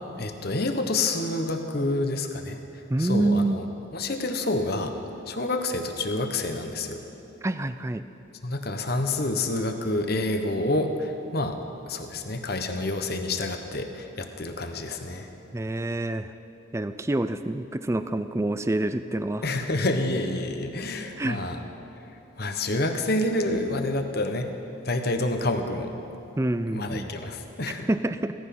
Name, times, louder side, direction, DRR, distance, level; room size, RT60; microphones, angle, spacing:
voice 1, 0.2-2.6 3.0-3.6 3.9-4.9 5.3-7.0 8.4-11.6 11.9-15.3 19.4-21.6 22.4-24.5 24.8-25.9 26.7-27.9, left 2 dB, 50° left, 5 dB, 1.1 m, -28 dB
voice 2, 2.9-3.6 7.4-8.0 15.5-16.3 16.7-19.5 21.2-21.4 26.4-27.1 27.9-28.3, right 2 dB, 15° right, 11 dB, 0.4 m, -27 dB
17.0 x 13.5 x 5.9 m, 2.8 s
head